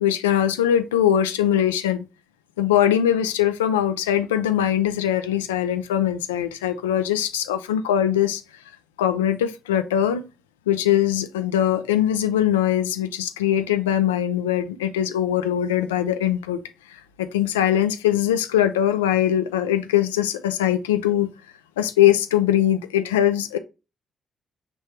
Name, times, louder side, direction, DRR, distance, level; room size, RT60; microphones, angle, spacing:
voice 1, 0.0-2.0 2.6-8.4 9.0-10.2 10.7-16.6 17.2-21.3 21.8-23.6, left 11 dB, 85° left, 0.3 m, -21 dB
5.1 x 3.1 x 3.0 m
hypercardioid pair, 40°, 0 cm